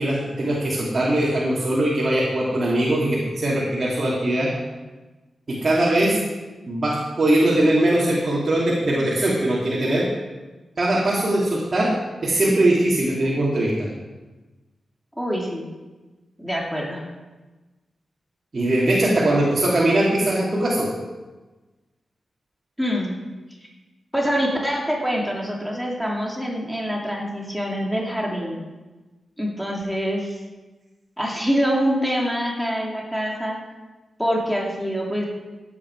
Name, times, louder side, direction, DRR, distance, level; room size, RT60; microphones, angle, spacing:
voice 1, 0.0-4.5 5.5-6.2 6.7-10.1 10.8-11.9 12.2-13.9 18.5-20.9, right 1 dB, 35° right, -7 dB, 3.1 m, -21 dB
voice 2, 15.2-15.6 16.4-17.0 22.8-23.1 24.1-28.6 29.4-30.4 31.2-33.6 34.2-35.3, equal, ahead, -2 dB, 2.5 m, -25 dB
16.0 x 8.9 x 4.9 m, 1.2 s
wide cardioid pair, 115°, 0 cm